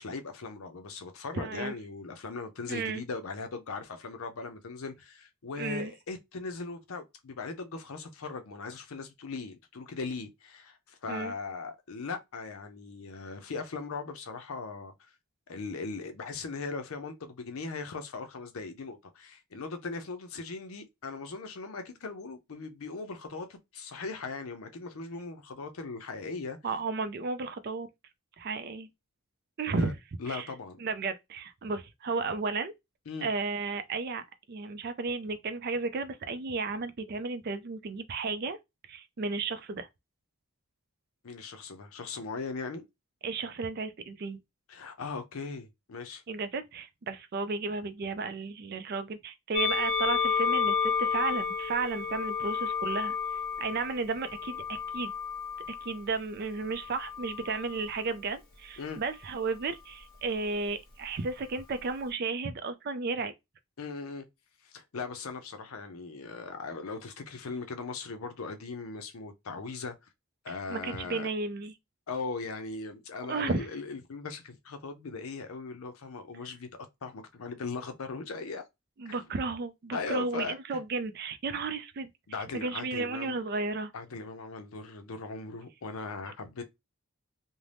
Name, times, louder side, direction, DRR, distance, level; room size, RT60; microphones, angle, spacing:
voice 1, 0.0-15.1 15.5-26.6 29.8-29.9 30.2-30.8 33.1-33.3 41.2-42.9 44.7-46.2 58.8-59.0 63.8-64.3 64.6-69.9 70.4-71.3 72.1-76.7 77.0-78.6 79.1-79.3 79.9-80.8 82.3-83.4 83.9-86.6, left 4 dB, 75° left, 0.6 m, -39 dB
voice 2, 1.3-1.8 2.7-3.0 5.6-5.9 11.1-11.3 26.6-27.9 28.4-28.9 29.6-30.0 30.3-30.5 30.8-32.7 33.2-38.6 38.9-39.9 43.2-44.4 46.3-55.1 55.7-63.3 70.7-71.7 73.3-73.7 79.0-82.1 82.5-83.9 86.3-86.4, right 4 dB, 45° right, 0.4 m, -33 dB
Musical instrument, 49.5-55.9 56.8-57.8, left 6 dB, 40° left, 0.8 m, -31 dB
2.6 x 2.1 x 3.2 m
head